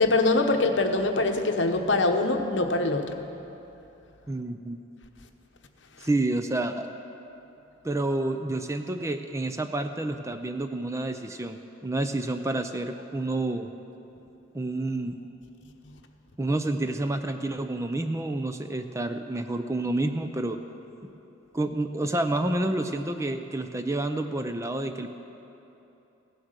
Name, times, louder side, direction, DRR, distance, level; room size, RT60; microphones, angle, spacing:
voice 1, 0.0-3.2, left 2 dB, 65° left, 5 dB, 1.0 m, -23 dB
voice 2, 4.3-4.8 6.0-6.9 7.8-13.7 14.5-15.2 16.4-20.6 21.5-25.1, right 2 dB, 15° right, 7 dB, 0.5 m, -29 dB
16.0 x 9.7 x 6.6 m, 2.9 s
head